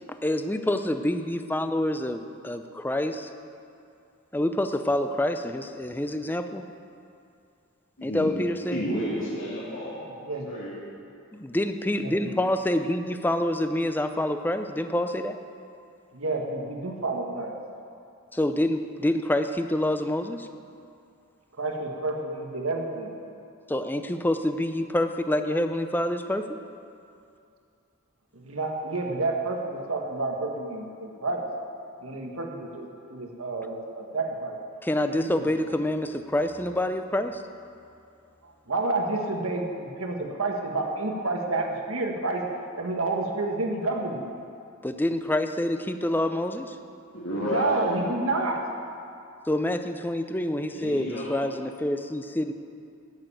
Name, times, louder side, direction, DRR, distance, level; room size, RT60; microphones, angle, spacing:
voice 1, 0.2-3.3 4.3-6.7 8.0-8.8 11.4-15.4 18.3-20.5 23.7-26.4 34.8-37.4 44.8-46.8 49.5-52.5, left 1 dB, 10° left, 8 dB, 0.5 m, -27 dB
voice 2, 8.0-8.3 8.7-10.7 47.1-47.9 50.5-51.4, equal, 70° left, -10 dB, 3.1 m, -31 dB
voice 3, 16.1-17.5 21.6-23.1 28.3-31.4 32.0-34.6 35.2-35.5 38.7-42.4 42.8-44.2 47.5-48.6, right 2 dB, 85° right, 1 dB, 1.6 m, -29 dB
14.0 x 6.8 x 8.8 m, 2.5 s
head